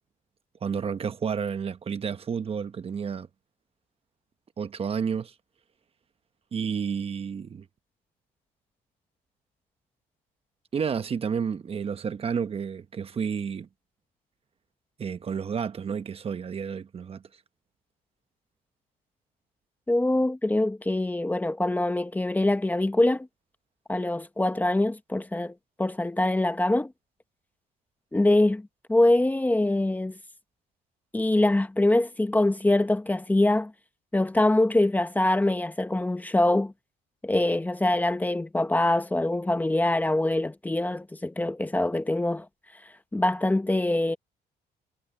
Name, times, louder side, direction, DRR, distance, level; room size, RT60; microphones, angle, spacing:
voice 1, 0.6-3.3 4.6-5.3 6.5-7.6 10.7-13.7 15.0-17.2, right 6 dB, 35° right, 1.1 m, -30 dB
voice 2, 19.9-23.3 23.9-26.9 28.1-28.6 28.9-30.2 31.1-33.7 34.1-36.7 37.2-42.5 43.1-44.2, left 1 dB, 10° left, 1.0 m, -24 dB
cardioid pair, 110°, 17 cm